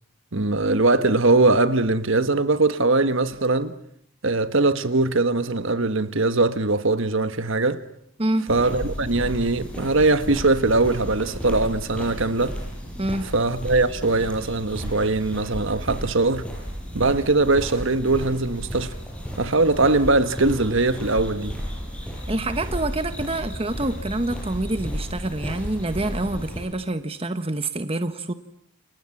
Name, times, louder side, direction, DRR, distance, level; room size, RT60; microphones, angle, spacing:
voice 1, 0.3-3.8 4.2-7.8 8.5-12.6 13.3-16.5 16.9-18.9 19.4-21.6, right 3 dB, 60° right, 1.4 m, -21 dB
sound 1, 8.5-26.6, equal, 5° left, 7.8 m, -33 dB
voice 2, 13.0-13.3 22.3-28.3, right 2 dB, 25° right, 1.2 m, -27 dB
29.5 x 28.0 x 7.3 m
head